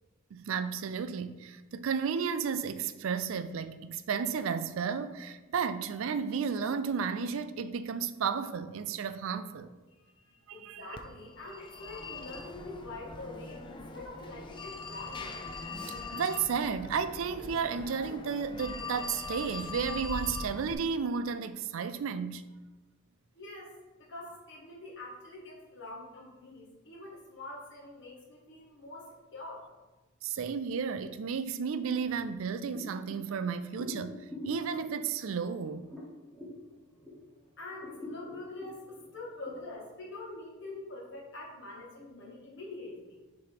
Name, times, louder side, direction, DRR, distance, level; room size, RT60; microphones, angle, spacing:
voice 1, 0.3-9.7 10.5-10.9 16.1-22.4 30.2-35.8, right 6 dB, 65° right, 0.4 m, -33 dB
voice 2, 9.9-15.7 23.3-23.7 24.0-29.6 37.6-43.2, left 2 dB, 55° left, 1.6 m, -45 dB
Telephone, 11.0-20.7, left 3 dB, 20° left, 0.4 m, -41 dB
sound 1, 32.7-37.3 37.7-39.5, left 2 dB, 5° left, 1.8 m, -45 dB
6.6 x 3.1 x 5.0 m
head